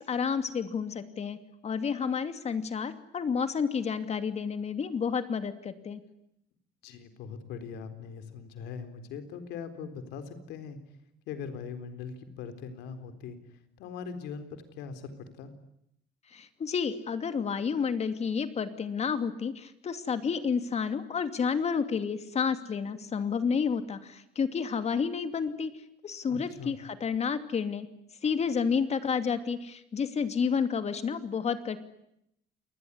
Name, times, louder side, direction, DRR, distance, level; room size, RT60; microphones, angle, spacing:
voice 1, 0.0-1.4 1.6-6.0 16.3-25.7 26.0-27.9 28.2-31.8, left 6 dB, 40° left, 10 dB, 2.7 m, -30 dB
voice 2, 6.8-10.8 11.3-13.4 13.8-15.5 26.3-26.8, left 6 dB, 85° left, 9 dB, 4.1 m, -41 dB
28.0 x 21.0 x 9.9 m, 0.77 s
cardioid pair, 110°, 17 cm